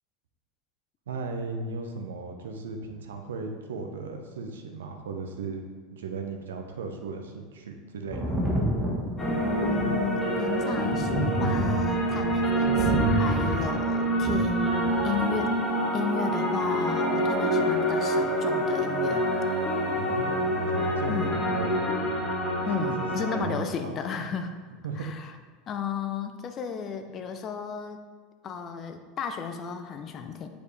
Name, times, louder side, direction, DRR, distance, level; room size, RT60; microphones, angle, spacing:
voice 1, 1.1-5.6 5.9-8.2 20.0-20.3 20.7-21.7 22.8-24.2 24.8-25.2, right 4 dB, 75° right, 4 dB, 0.9 m, -36 dB
Thunder, 8.1-15.4 16.6-16.7, equal, 10° right, 1.5 m, -30 dB
sound 1, 9.2-23.4, right 1 dB, 25° left, 1.8 m, -27 dB
voice 2, 9.4-15.6 15.9-19.2 21.1-21.4 22.6-24.6 25.0-25.3 25.7-28.0 28.4-30.5, left 6 dB, 40° left, 7 dB, 0.7 m, -33 dB
8.2 x 5.1 x 3.3 m, 1.5 s
hypercardioid pair, 80°, 0 cm